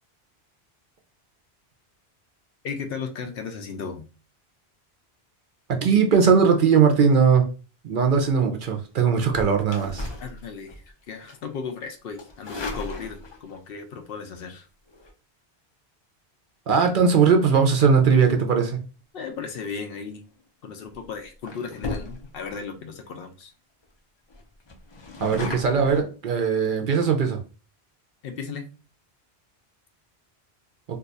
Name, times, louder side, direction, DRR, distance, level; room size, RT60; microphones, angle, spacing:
voice 1, 2.6-4.1 10.2-14.7 19.1-20.2 20.6-23.5 28.2-28.7, left 5 dB, 65° left, 6 dB, 0.7 m, -35 dB
voice 2, 5.7-7.4 7.8-10.1 16.7-18.8 25.2-27.4, right 6 dB, 60° right, 4 dB, 0.7 m, -19 dB
sound 1, 9.2-10.9 11.3-11.5 12.2-13.6 14.9-15.1 20.1-20.4 20.9-21.1 21.4-22.5 23.1-23.2 23.4-23.5 23.8-23.9 24.3-26.0, left 2 dB, 35° left, 0.5 m, -36 dB
2.7 x 2.3 x 3.9 m, 0.34 s
omnidirectional pair, 1.1 m